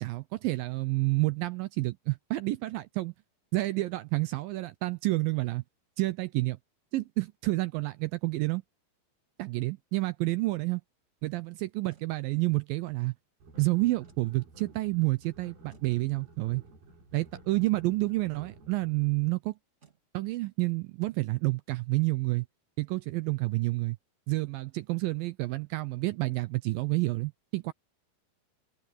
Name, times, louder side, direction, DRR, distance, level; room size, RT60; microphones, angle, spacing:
voice 1, 0.0-3.1 3.5-5.6 6.0-6.6 6.9-8.6 9.4-10.8 11.2-13.1 13.6-16.6 17.1-19.5 20.1-22.5 22.8-24.0 24.3-27.7, right 21 dB, 80° right, 2.1 m, -29 dB
sound 1, 11.9-12.1 14.0-14.3 15.7-15.9 17.6-17.9 19.8-20.0, right 7 dB, 25° right, 1.7 m, -62 dB
sound 2, 13.4-19.1, right 2 dB, 65° right, 5.9 m, -53 dB
omnidirectional pair, 4.6 m